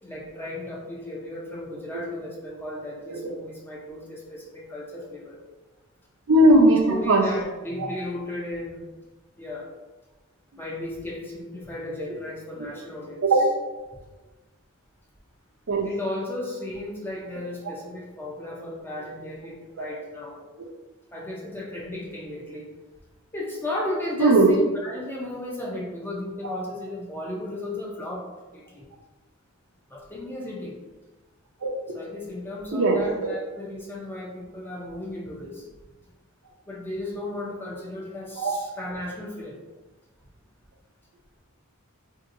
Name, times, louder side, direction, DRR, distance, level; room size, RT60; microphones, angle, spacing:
voice 1, 0.0-5.4 6.7-8.9 9.4-9.7 10.6-13.2 15.8-20.4 21.1-22.7 23.3-28.2 28.5-28.9 29.9-30.8 31.9-35.7 36.7-39.6, left 1 dB, 10° left, -3 dB, 0.4 m, -35 dB
voice 2, 6.3-7.2 13.2-13.6 15.7-15.9 24.2-24.5 26.4-26.5 31.6-31.7 32.7-33.0 38.4-38.5, right 1 dB, 65° right, 2 dB, 0.5 m, -18 dB
3.7 x 2.7 x 2.5 m, 1.2 s
head